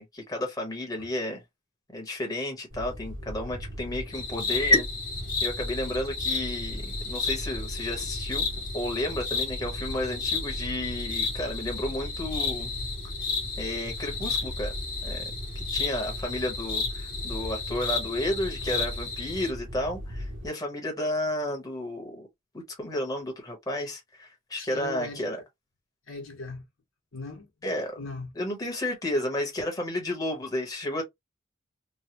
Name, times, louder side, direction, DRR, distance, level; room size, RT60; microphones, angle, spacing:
voice 1, 0.0-1.4 1.9-4.9 5.4-8.4 8.7-12.7 13.6-14.7 15.0-15.2 15.5-22.3 22.7-25.4 27.6-27.9 28.3-31.0, left 1 dB, 20° left, 1.1 m, -31 dB
sound 1, 2.7-20.5, equal, 60° right, 0.9 m, -38 dB
sound 2, 4.1-19.5, left 4 dB, 45° left, 1.0 m, -33 dB
voice 2, 24.6-25.3 26.1-26.6 27.1-27.5 28.0-28.3, left 3 dB, 80° left, 1.3 m, -38 dB
3.1 x 2.2 x 2.9 m
head